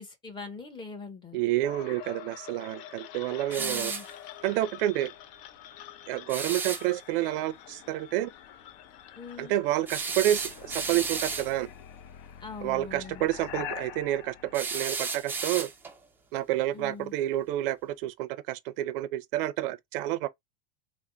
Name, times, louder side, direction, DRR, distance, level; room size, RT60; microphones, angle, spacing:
voice 1, 0.0-1.4 3.6-4.1 9.2-9.5 12.4-13.2 16.7-17.1, left 4 dB, 15° left, 0.8 m, -42 dB
voice 2, 1.3-3.9 4.4-5.1 6.1-8.3 9.4-11.7 12.6-15.7 16.3-20.3, right 14 dB, 60° right, 0.5 m, -29 dB
sound 1, 1.6-15.5, left 10 dB, 60° left, 0.7 m, -45 dB
sound 2, 3.5-4.1 6.3-6.8 9.9-11.5 14.5-16.0, right 4 dB, 5° right, 0.4 m, -33 dB
3.4 x 2.1 x 3.7 m
supercardioid pair, 155°, 30 cm